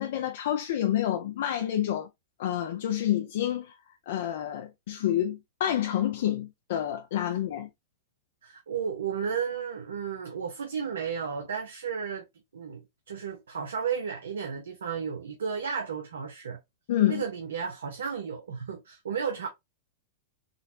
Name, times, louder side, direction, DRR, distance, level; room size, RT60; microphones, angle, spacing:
voice 1, 0.0-2.1 2.4-3.8 4.1-7.7 16.9-17.2, left 11 dB, 65° left, 0.5 m, -28 dB
voice 2, 8.4-12.2 12.5-16.6 17.1-19.5, right 6 dB, 85° right, 0.7 m, -33 dB
3.8 x 2.2 x 2.5 m
hypercardioid pair, 115°, 0 cm